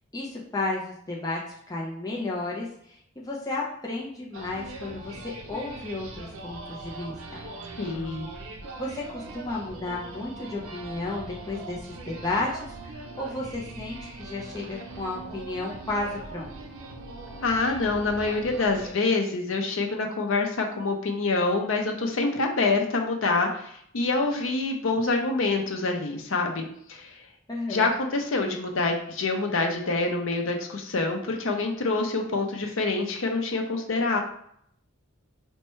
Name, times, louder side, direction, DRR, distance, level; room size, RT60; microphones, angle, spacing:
voice 1, 0.1-1.4 1.7-7.4 8.8-16.5 27.5-27.9, left 2 dB, 15° left, -4 dB, 0.5 m, -33 dB
sound 1, 4.3-18.9, right 2 dB, 80° right, 0.6 m, -41 dB
voice 2, 7.8-8.3 17.4-27.2 27.7-34.2, left 3 dB, 70° left, 3 dB, 0.6 m, -26 dB
4.3 x 2.2 x 3.0 m, 0.70 s
head